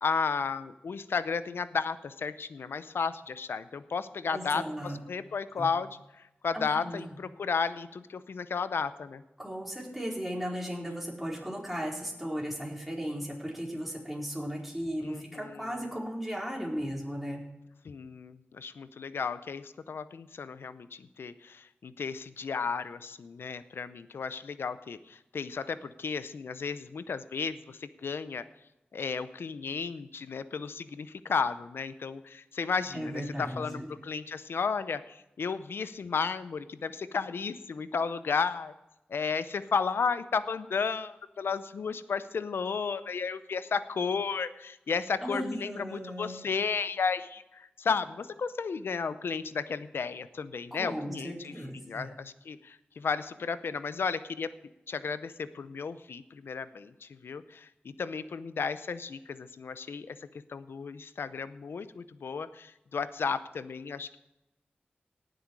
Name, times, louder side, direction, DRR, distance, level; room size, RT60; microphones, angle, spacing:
voice 1, 0.0-5.9 6.2-9.2 15.0-15.8 17.8-28.4 28.9-38.7 39.1-54.5 54.9-60.2 60.5-64.2, left 5 dB, 85° left, 14 dB, 0.6 m, -33 dB
voice 2, 4.3-5.0 5.6-5.7 6.5-7.1 9.4-17.4 32.9-33.9 45.2-46.5 50.7-52.1, equal, 5° right, -3 dB, 4.5 m, -36 dB
18.0 x 7.9 x 4.7 m, 0.93 s
cardioid pair, 50°, 4 cm